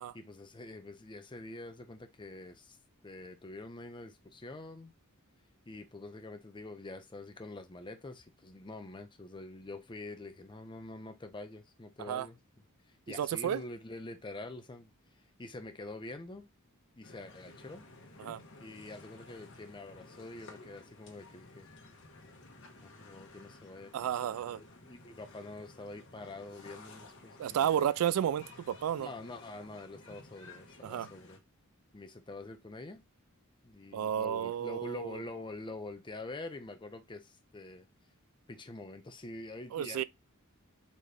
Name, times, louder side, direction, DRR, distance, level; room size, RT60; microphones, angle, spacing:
voice 1, 0.0-2.8 3.0-4.9 5.7-12.4 13.1-14.9 15.4-16.5 17.0-17.9 18.6-21.7 22.8-27.9 29.0-31.4 31.9-33.0 33.6-37.9 38.5-40.0, left 2 dB, 20° left, 0.6 m, -46 dB
voice 2, 13.1-13.6 18.2-18.4 23.9-24.6 27.4-29.1 30.8-31.1 33.9-35.2 39.7-40.0, right 10 dB, 80° right, 0.3 m, -32 dB
sound 1, 17.0-31.4, left 2 dB, 60° left, 1.1 m, -54 dB
4.1 x 3.1 x 3.3 m
head